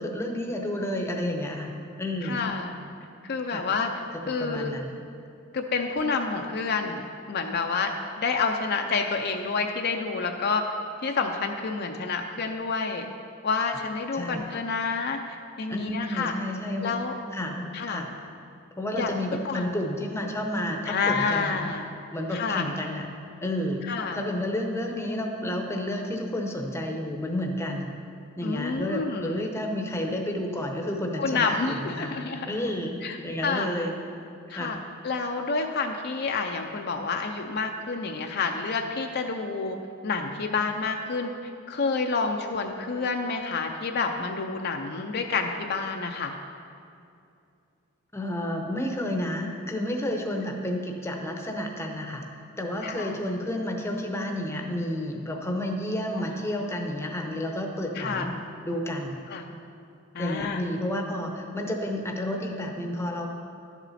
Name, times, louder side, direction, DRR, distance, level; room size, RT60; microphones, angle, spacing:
voice 1, 0.0-1.7 2.0-2.5 3.5-3.7 4.1-5.0 14.1-14.4 15.7-17.0 17.3-18.1 18.8-21.7 22.1-23.1 23.4-23.8 24.1-27.9 28.4-33.9 34.5-34.8 48.1-52.2 52.6-58.3 58.6-59.2 60.2-63.3, left 1 dB, 15° left, 2 dB, 0.8 m, -31 dB
voice 2, 2.2-2.8 3.2-3.9 4.3-4.7 5.5-7.0 7.3-7.9 8.2-10.6 11.0-13.1 13.4-15.2 15.6-16.3 16.8-17.1 17.7-18.0 18.9-19.1 19.4-19.7 20.9-22.0 22.3-22.6 23.8-24.2 28.4-29.4 31.2-32.6 33.0-33.2 33.4-33.7 34.5-34.8 35.0-39.8 40.0-41.3 41.7-46.3 52.8-53.2 56.1-56.3 57.9-58.3 59.3-59.4 60.1-60.6, left 4 dB, 50° left, 4 dB, 0.5 m, -28 dB
12.0 x 7.1 x 4.2 m, 2.5 s
head